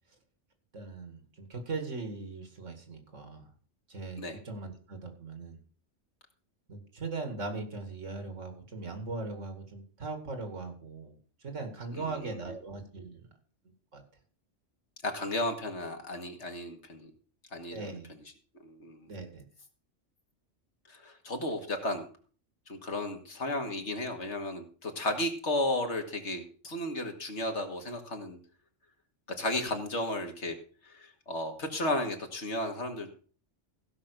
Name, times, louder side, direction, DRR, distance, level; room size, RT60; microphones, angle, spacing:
voice 1, 0.7-3.5 3.9-5.6 6.7-11.1 11.4-13.3 13.9-14.0 17.7-18.1 19.1-19.4, right 3 dB, 85° right, 6 dB, 2.7 m, -39 dB
voice 2, 11.9-12.4 15.0-17.1 17.5-17.9 18.6-19.1 20.9-22.1 22.7-28.4 29.4-30.6 30.8-33.1, left 1 dB, 70° left, 4 dB, 2.2 m, -34 dB
15.5 x 6.0 x 6.6 m, 0.42 s
omnidirectional pair, 1.2 m